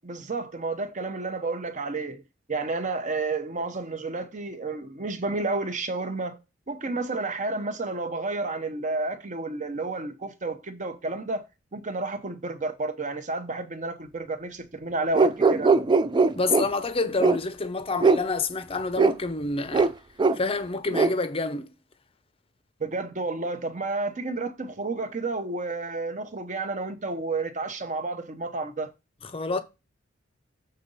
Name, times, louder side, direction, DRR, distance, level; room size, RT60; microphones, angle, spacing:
voice 1, 0.0-2.2 2.5-6.4 6.7-11.4 11.7-15.8 22.8-28.9, right 3 dB, 40° right, 0.9 m, -31 dB
sound 1, 15.1-16.7 17.2-17.4 18.0-18.2 19.0-19.1 19.7-19.9 20.2-20.4 20.9-21.1, right 4 dB, 25° right, 0.4 m, -20 dB
voice 2, 16.4-19.9 20.3-21.7 29.3-29.6, left 3 dB, 30° left, 0.6 m, -28 dB
6.8 x 3.9 x 5.4 m
head